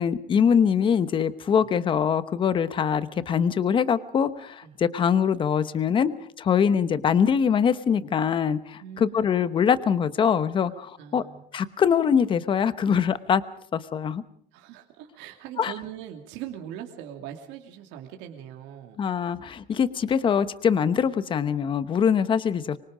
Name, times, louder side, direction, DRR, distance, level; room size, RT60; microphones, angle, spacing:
voice 1, 0.0-6.1 6.4-10.7 11.1-11.2 11.5-13.4 13.7-14.2 15.6-15.7 19.0-22.8, left 7 dB, 25° left, 14 dB, 1.0 m, -23 dB
voice 2, 8.8-9.3 10.7-11.4 14.5-19.0, right 10 dB, 65° right, 3 dB, 2.8 m, -41 dB
25.0 x 24.5 x 5.1 m, 0.62 s
cardioid pair, 160°, 20 cm